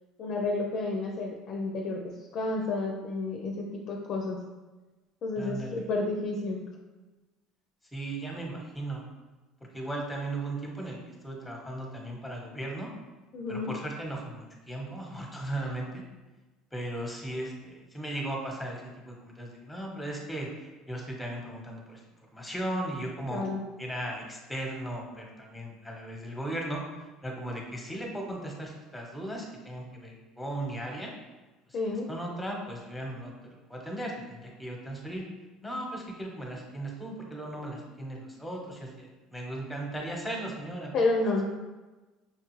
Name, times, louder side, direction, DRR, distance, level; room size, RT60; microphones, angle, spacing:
voice 1, 0.2-4.4 5.2-6.7 13.3-13.7 23.3-23.6 31.7-32.1 40.9-41.4, left 3 dB, 50° left, 1 dB, 0.5 m, -30 dB
voice 2, 5.4-5.8 7.9-9.1 9.7-12.9 13.5-16.0 16.7-22.0 22.3-23.5 23.8-31.1 31.7-35.2 35.6-40.9, right 1 dB, 5° left, -1 dB, 1.0 m, -37 dB
5.6 x 2.3 x 3.1 m, 1.2 s
supercardioid pair, 100°, 0 cm